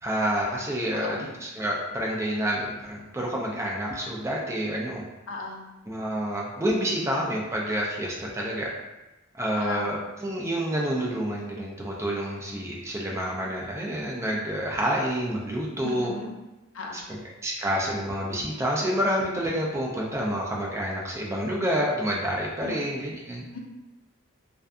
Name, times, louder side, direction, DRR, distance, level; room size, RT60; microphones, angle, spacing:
voice 1, 0.0-5.0 5.9-8.7 9.3-16.1 17.1-23.4, equal, 15° right, -2 dB, 0.3 m, -28 dB
voice 2, 0.9-1.3 5.3-5.6 9.6-9.9 15.8-16.4 16.7-17.0 22.6-22.8 23.5-23.6, left 3 dB, 90° left, 0 dB, 0.5 m, -36 dB
2.6 x 2.2 x 2.4 m, 1.0 s
head